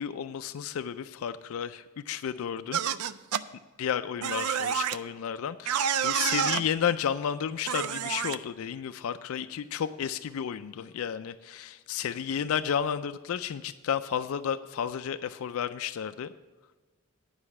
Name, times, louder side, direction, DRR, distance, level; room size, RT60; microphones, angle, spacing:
voice 1, 0.0-2.8 3.8-16.3, left 8 dB, 70° left, 11 dB, 0.3 m, -32 dB
sound 1, 2.7-3.4 4.2-5.0 5.7-6.6 7.7-8.4, right 8 dB, 80° right, 0.4 m, -28 dB
9.7 x 5.5 x 7.2 m, 1.3 s
head